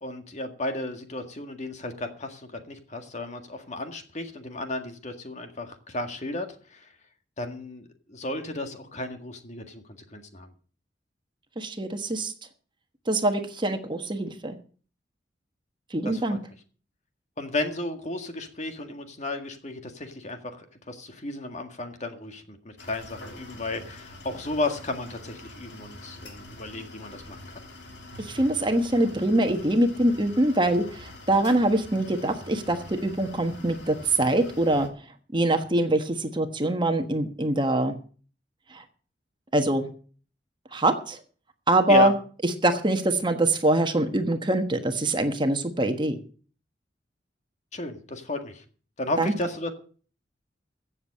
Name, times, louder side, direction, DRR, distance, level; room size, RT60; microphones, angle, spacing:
voice 1, 0.0-6.9 7.4-9.8 10.1-10.5 16.0-16.4 17.4-27.6 41.9-42.1 47.7-48.6 49.0-49.7, left 2 dB, 40° left, 6 dB, 1.8 m, -33 dB
voice 2, 11.6-12.3 13.1-14.6 15.9-16.4 28.2-34.9 35.3-38.0 38.7-38.8 39.5-39.9 40.7-41.2 41.7-42.1 42.4-46.2 49.2-49.3, right 1 dB, 25° right, 6 dB, 1.3 m, -24 dB
sound 1, 22.8-34.9, left 1 dB, 70° left, 3.1 m, -45 dB
16.0 x 7.4 x 6.5 m, 0.41 s
head